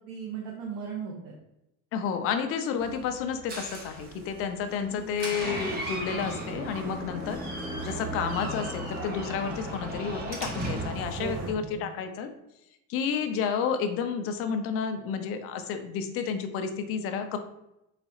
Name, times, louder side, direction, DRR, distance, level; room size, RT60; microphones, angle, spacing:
voice 1, 0.0-1.4 4.9-5.2 11.2-11.9, right 6 dB, 75° right, -1 dB, 0.9 m, -37 dB
voice 2, 1.9-7.4 7.8-12.3 12.9-17.4, left 6 dB, 40° left, 7 dB, 0.4 m, -31 dB
Door, 2.8-11.5, right 1 dB, 25° right, 0.7 m, -36 dB
4.0 x 2.3 x 4.1 m, 0.87 s
cardioid pair, 170°, 35 cm